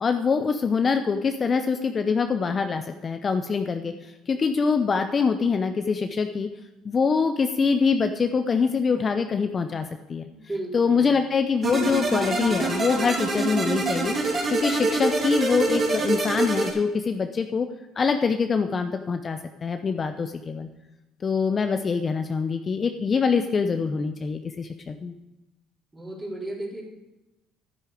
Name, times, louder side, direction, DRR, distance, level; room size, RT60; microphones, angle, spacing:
voice 1, 0.0-6.5 6.8-10.2 10.7-14.1 14.5-17.7 18.0-20.7 21.2-25.1, left 5 dB, 35° left, 7 dB, 0.6 m, -24 dB
voice 2, 10.3-11.1 25.9-26.8, right 1 dB, 15° right, -3 dB, 4.1 m, -34 dB
sound 1, 11.6-16.7, right 3 dB, 35° right, 2.7 m, -25 dB
10.5 x 9.8 x 5.1 m, 0.96 s
cardioid pair, 105°, 0 cm